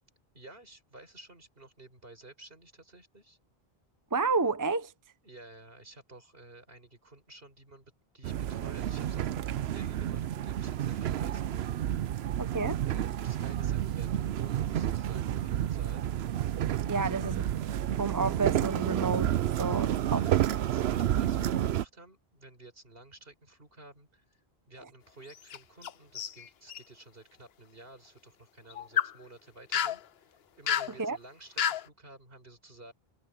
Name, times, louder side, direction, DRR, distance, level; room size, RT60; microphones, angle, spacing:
voice 1, 0.3-3.4 5.2-12.1 12.9-16.0 16.9-17.3 20.1-32.9, right 2 dB, 65° right, 4.8 m, -53 dB
voice 2, 4.1-4.9 12.4-12.8 16.9-17.4 18.0-20.2 31.0-31.2, right 4 dB, 20° right, 0.7 m, -30 dB
sound 1, 8.2-21.8, right 11 dB, 85° right, 0.9 m, -30 dB
sound 2, 25.2-26.8 28.7-29.1 29.7-30.0 30.7-30.9 31.6-31.9, left 9 dB, 75° left, 1.0 m, -30 dB
omnidirectional pair, 1.0 m